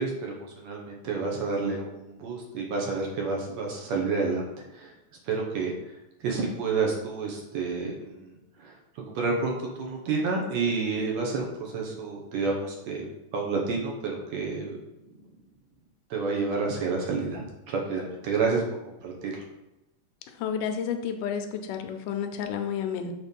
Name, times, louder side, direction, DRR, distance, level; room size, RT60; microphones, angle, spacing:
voice 1, 0.0-4.5 4.7-4.9 5.3-5.7 6.2-8.3 8.6-8.7 9.2-14.7 16.1-19.4, right 4 dB, 65° right, -1 dB, 2.0 m, -29 dB
voice 2, 20.4-23.1, left 7 dB, 85° left, 6 dB, 2.2 m, -31 dB
6.6 x 3.2 x 5.3 m, 0.93 s
omnidirectional pair, 3.6 m